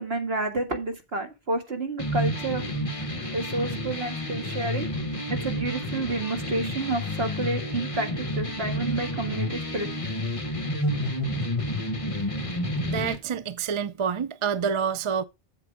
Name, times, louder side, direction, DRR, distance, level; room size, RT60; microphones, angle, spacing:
voice 1, 0.0-2.6 3.3-4.9 5.3-9.9, right 2 dB, 70° right, 2.2 m, -30 dB
sound 1, 2.0-13.1, equal, 30° left, 1.4 m, -30 dB
voice 2, 12.8-15.2, right 7 dB, 40° right, 0.5 m, -28 dB
7.6 x 7.4 x 4.9 m
omnidirectional pair, 1.1 m